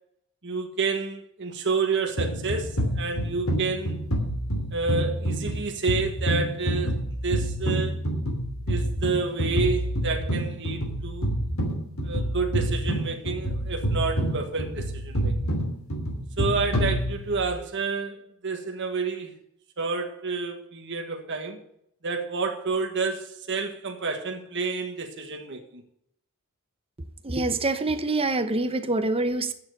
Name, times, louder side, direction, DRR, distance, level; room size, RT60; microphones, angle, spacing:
voice 1, 0.4-4.0 4.7-7.0 7.2-8.0 8.7-11.3 12.0-15.5 16.4-19.3 19.8-21.6 22.0-25.8, right 4 dB, 60° right, 1.6 m, -29 dB
sound 1, 2.2-17.5, right 1 dB, 70° left, 2.9 m, -28 dB
voice 2, 27.2-29.5, right 2 dB, 25° right, 0.9 m, -25 dB
9.4 x 7.1 x 7.9 m
head